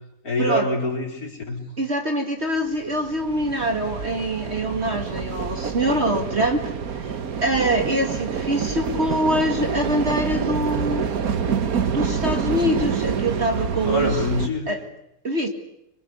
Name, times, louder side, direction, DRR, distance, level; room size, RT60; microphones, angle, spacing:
voice 1, 0.2-1.6 13.8-14.7, left 1 dB, 50° left, 1 dB, 4.9 m, -25 dB
voice 2, 1.8-6.6 7.0-7.1 7.4-11.0 11.9-14.2 14.7-14.8 15.2-15.5, right 1 dB, 35° right, 4 dB, 2.4 m, -24 dB
sound 1, 2.6-14.5, right 6 dB, 55° right, 1.6 m, -27 dB
26.0 x 23.5 x 8.1 m, 0.82 s
omnidirectional pair, 2.0 m